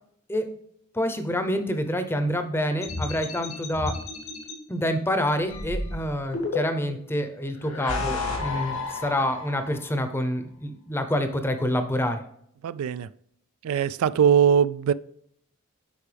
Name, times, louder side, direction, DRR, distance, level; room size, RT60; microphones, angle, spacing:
voice 1, 0.9-4.0 4.7-12.2, equal, 10° left, 0.7 m, -27 dB
sound 1, 2.8-4.5 5.5-7.0 7.6-9.8, left 3 dB, 85° left, 2.2 m, -32 dB
voice 2, 12.6-13.1 13.6-14.9, right 8 dB, 85° right, 0.3 m, -21 dB
8.4 x 5.6 x 3.3 m
head